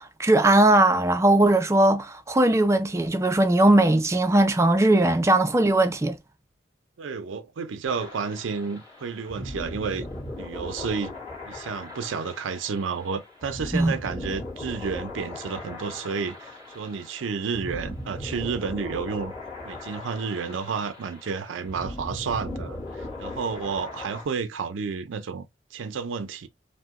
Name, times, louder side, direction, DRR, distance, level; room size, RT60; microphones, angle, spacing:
voice 1, 0.0-6.2 13.7-13.9, right 1 dB, 15° right, 0.3 m, -19 dB
voice 2, 7.0-10.1 10.4-11.1 11.5-19.3 19.6-26.5, right 5 dB, 85° right, 0.4 m, -31 dB
sound 1, 7.9-24.2, left 1 dB, 35° left, 1.5 m, -38 dB
2.8 x 2.1 x 3.5 m
head